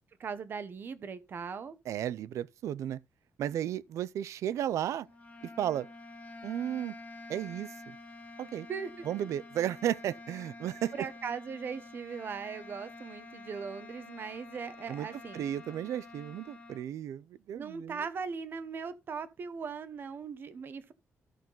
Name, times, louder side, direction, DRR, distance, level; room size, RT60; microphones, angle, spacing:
voice 1, 0.2-1.7 8.7-9.3 10.9-15.4 17.5-20.9, right 6 dB, 45° right, 1.0 m, -39 dB
voice 2, 1.9-3.0 3.4-5.1 5.6-5.9 6.4-6.9 7.3-8.0 8.4-8.7 9.1-10.9 14.9-15.1 15.3-18.0, right 11 dB, 85° right, 0.5 m, -34 dB
sound 1, 5.0-16.9, left 2 dB, 25° left, 2.3 m, -48 dB
13.0 x 6.0 x 3.9 m
wide cardioid pair, 160°, 5 cm